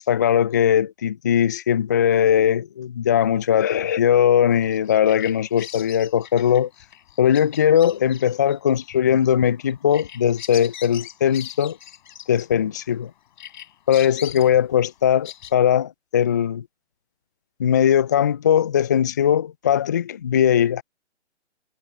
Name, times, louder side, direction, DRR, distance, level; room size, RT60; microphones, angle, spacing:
voice 1, 0.1-6.7 7.2-11.8 12.3-13.1 13.9-16.6 17.6-20.8, left 9 dB, 15° left, 0.4 m, -19 dB
Bird vocalization bird call bird song, 4.6-13.0 13.4-15.5, left 11 dB, 40° left, 7.2 m, -41 dB
figure-of-eight pair, 135°, 35 cm